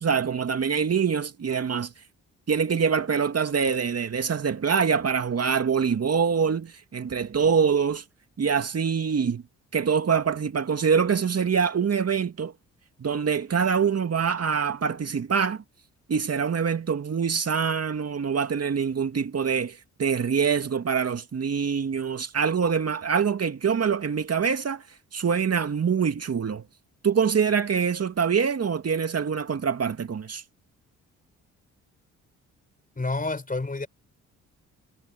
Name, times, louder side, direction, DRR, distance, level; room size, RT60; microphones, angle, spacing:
voice 1, 0.0-1.9 2.5-8.0 8.4-9.4 9.7-12.5 13.0-15.6 16.1-24.8 25.1-26.6 27.0-30.4, right 6 dB, 40° right, 2.4 m, -25 dB
voice 2, 33.0-33.9, left 3 dB, 25° left, 4.3 m, -29 dB
hypercardioid pair, 50°, 36 cm